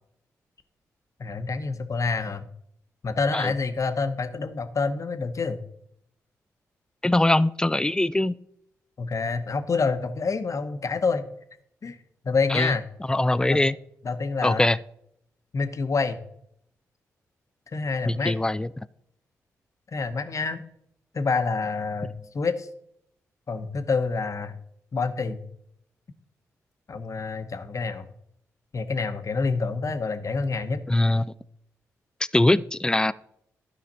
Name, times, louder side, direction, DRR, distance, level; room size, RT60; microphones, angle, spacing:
voice 1, 1.2-2.5 3.0-5.6 9.0-11.2 11.8-12.0 12.2-12.8 13.5-13.6 14.0-14.7 15.5-16.2 17.7-18.3 19.9-20.6 21.1-22.1 22.3-22.7 23.5-24.5 24.9-25.4 26.9-28.1 28.7-30.8, left 4 dB, 50° left, 9 dB, 1.0 m, -27 dB
voice 2, 7.0-8.4 12.5-12.7 13.1-13.8 14.4-14.8 18.0-18.7 30.9-31.3 32.3-33.1, left 1 dB, 10° left, 18 dB, 0.4 m, -22 dB
12.0 x 5.0 x 4.3 m, 0.72 s
supercardioid pair, 45°, 7 cm